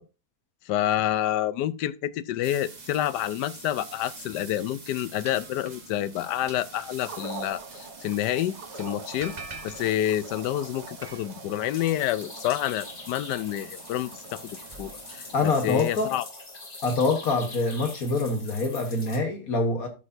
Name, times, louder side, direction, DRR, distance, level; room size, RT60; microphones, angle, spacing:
voice 1, 0.7-9.3 9.6-16.3, left 12 dB, 85° left, 1.2 m, -28 dB
sound 1, 2.4-16.1, right 3 dB, 30° right, 1.1 m, -45 dB
sound 2, 7.0-19.3, right 3 dB, 45° right, 1.8 m, -46 dB
sound 3, 11.7-19.2, left 3 dB, 35° left, 1.5 m, -43 dB
voice 2, 15.3-16.1 16.8-19.9, left 3 dB, 60° left, 1.6 m, -25 dB
12.5 x 6.2 x 2.6 m
omnidirectional pair, 1.8 m